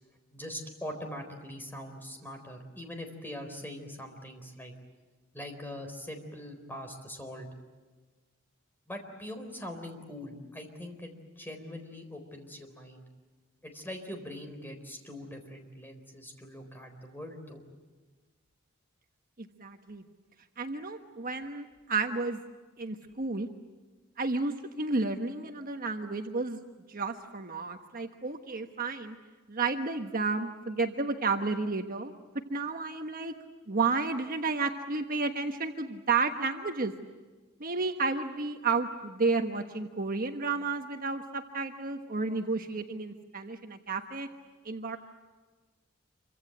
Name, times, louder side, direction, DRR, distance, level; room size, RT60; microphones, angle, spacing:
voice 1, 0.3-4.7 5.3-7.5 8.9-13.0 13.6-17.6, left 1 dB, 10° left, 5 dB, 4.1 m, -42 dB
voice 2, 19.4-20.0 20.6-22.4 22.8-23.5 24.2-26.6 26.9-29.2 29.5-32.1 32.5-33.3 33.7-36.9 37.6-44.3 44.6-45.0, right 4 dB, 45° right, 5 dB, 1.3 m, -31 dB
27.0 x 24.5 x 8.0 m, 1.3 s
head